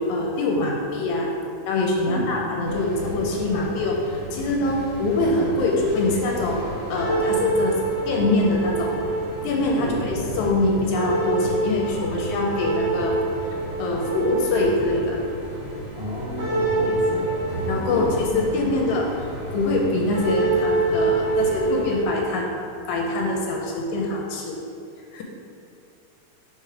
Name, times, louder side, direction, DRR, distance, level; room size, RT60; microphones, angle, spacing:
voice 1, 0.0-1.3 1.7-6.6 6.9-8.9 9.4-13.2 13.8-15.2 16.8-16.9 17.7-22.6 22.9-24.6 25.1-25.2, left 2 dB, 80° left, 0 dB, 2.0 m, -24 dB
sound 1, 2.6-22.0, right 2 dB, 45° right, 1.7 m, -27 dB
voice 2, 16.0-17.3 17.9-18.1, equal, 60° left, -11 dB, 0.6 m, -30 dB
5.0 x 4.9 x 4.6 m, 2.7 s
omnidirectional pair, 3.5 m